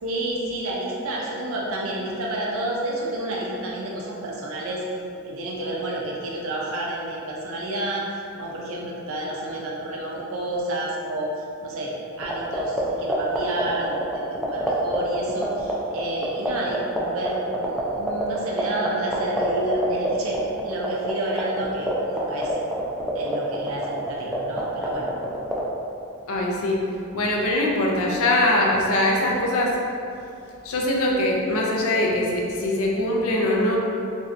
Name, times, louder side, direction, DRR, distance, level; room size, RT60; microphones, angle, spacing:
voice 1, 0.0-4.8 5.2-8.1 8.4-11.9 12.2-17.4 17.9-22.5 23.1-25.1, right 1 dB, 70° right, -3 dB, 0.6 m, -30 dB
sound 1, 12.2-25.6, equal, ahead, 0.3 m, -25 dB
voice 2, 26.3-26.8 27.1-29.7 30.6-33.8, left 1 dB, 70° left, -2 dB, 0.5 m, -22 dB
3.1 x 2.6 x 2.5 m, 2.6 s
head